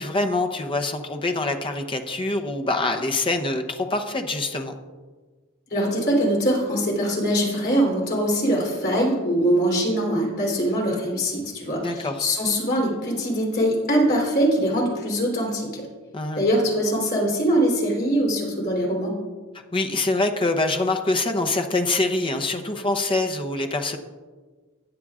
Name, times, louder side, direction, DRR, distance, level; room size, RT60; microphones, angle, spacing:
voice 1, 0.0-4.7 11.7-12.2 16.1-16.4 19.7-24.0, left 2 dB, 25° left, 5 dB, 0.8 m, -25 dB
voice 2, 5.7-15.9 16.3-19.2, equal, 45° left, -2 dB, 3.4 m, -22 dB
15.5 x 9.4 x 2.5 m, 1.4 s
head